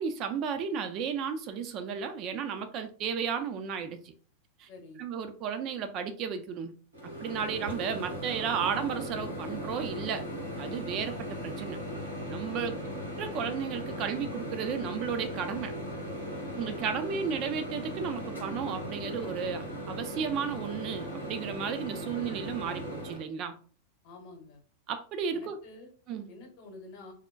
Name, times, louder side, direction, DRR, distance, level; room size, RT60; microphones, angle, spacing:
voice 1, 0.0-4.1 4.6-4.7 5.0-6.8 7.0-10.2 10.6-11.8 12.3-12.7 13.2-15.7 16.6-23.6 24.9-25.6 26.1-26.3, right 7 dB, 40° right, 0.3 m, -33 dB
voice 2, 4.7-5.0 12.5-12.8 24.0-24.6 25.3-25.9 26.3-27.1, left 2 dB, 50° left, 0.9 m, -48 dB
Microwave oven, 6.9-23.2, equal, 85° right, 1.0 m, -38 dB
3.4 x 2.1 x 2.2 m
figure-of-eight pair, 90°, 0 cm